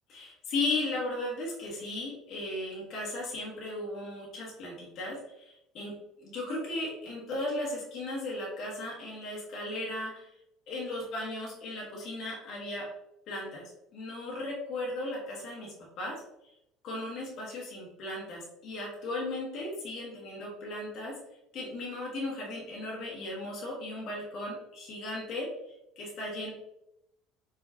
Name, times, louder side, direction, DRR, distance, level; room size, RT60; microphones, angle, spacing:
voice 1, 0.1-5.9 6.2-10.3 10.7-12.9 13.3-13.6 13.9-16.1 16.8-21.1 21.5-25.5 26.0-26.5, left 2 dB, 55° left, -2 dB, 1.3 m, -36 dB
5.0 x 2.8 x 2.7 m, 0.83 s
hypercardioid pair, 65°, 0 cm